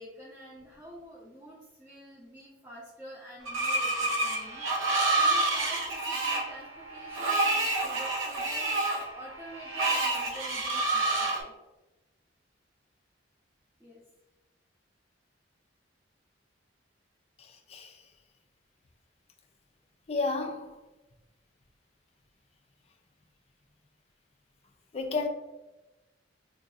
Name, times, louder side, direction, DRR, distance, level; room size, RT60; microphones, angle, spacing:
voice 1, 0.0-4.7 5.1-8.7 9.1-11.5 13.8-14.0, equal, 15° right, 0.6 m, -47 dB
Screech, 3.5-11.4, right 2 dB, 80° right, 0.6 m, -28 dB
voice 2, 17.4-18.1 20.1-20.8 24.9-25.3, left 3 dB, 30° left, 0.4 m, -32 dB
3.8 x 2.5 x 2.4 m
head